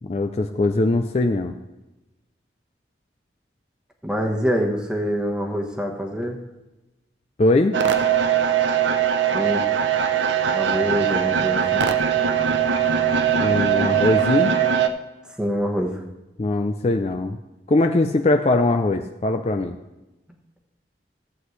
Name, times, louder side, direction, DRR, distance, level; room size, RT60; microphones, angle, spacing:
voice 1, 0.0-1.5 7.4-7.8 13.4-14.5 16.4-17.4 17.7-19.8, left 2 dB, 35° left, 5 dB, 0.4 m, -21 dB
voice 2, 4.0-6.4 9.3-9.6 10.5-11.9 15.4-16.0, equal, 5° right, 1 dB, 1.1 m, -25 dB
sound 1, 7.7-14.9, right 8 dB, 85° right, 0.6 m, -20 dB
15.0 x 7.9 x 3.2 m, 1.0 s
head